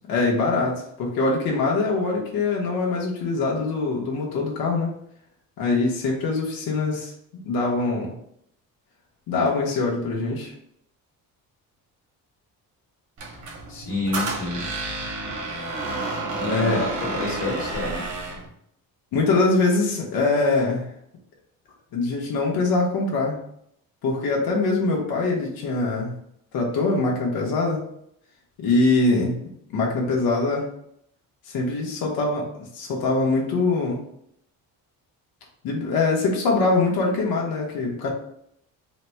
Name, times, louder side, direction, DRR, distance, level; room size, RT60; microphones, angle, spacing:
voice 1, 0.1-4.9 5.6-8.1 9.3-10.5 16.4-16.8 19.1-20.9 21.9-23.4 24.0-26.1 26.5-27.8 28.6-29.4 29.7-30.7 31.5-34.0 35.6-38.1, left 3 dB, 75° left, -2 dB, 1.0 m, -23 dB
Squeak, 13.2-18.5, right 2 dB, 55° right, 1.1 m, -30 dB
voice 2, 13.7-14.7 16.4-18.0, left 2 dB, 55° left, -2 dB, 1.5 m, -28 dB
4.1 x 2.1 x 4.4 m, 0.72 s
cardioid pair, 130°, 36 cm